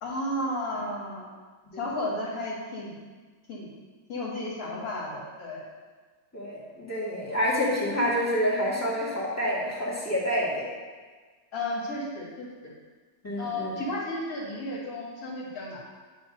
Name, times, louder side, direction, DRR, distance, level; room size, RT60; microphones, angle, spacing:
voice 1, 0.0-1.3 1.7-3.1 3.5-3.7 4.1-5.6 11.5-12.7 13.4-16.0, left 1 dB, 55° left, -3 dB, 2.2 m, -33 dB
voice 2, 6.3-10.7 13.2-13.8, equal, 10° left, -6 dB, 1.8 m, -28 dB
10.5 x 3.7 x 5.3 m, 1.4 s
omnidirectional pair, 1.9 m